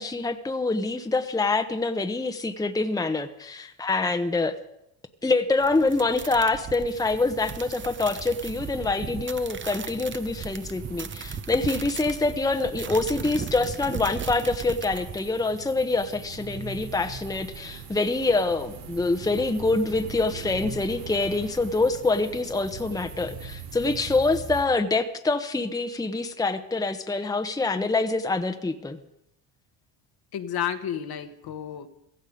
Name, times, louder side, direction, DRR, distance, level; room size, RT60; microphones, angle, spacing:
voice 1, 0.0-4.5 5.2-29.0, left 3 dB, 10° left, 7 dB, 1.0 m, -25 dB
sound 1, 5.6-15.2, right 6 dB, 25° right, 0.9 m, -37 dB
sound 2, 6.9-24.6, right 5 dB, 65° right, 5.4 m, -42 dB
voice 2, 30.3-31.9, left 9 dB, 50° left, 8 dB, 1.5 m, -31 dB
16.5 x 14.5 x 5.2 m, 0.84 s
supercardioid pair, 75°, 47 cm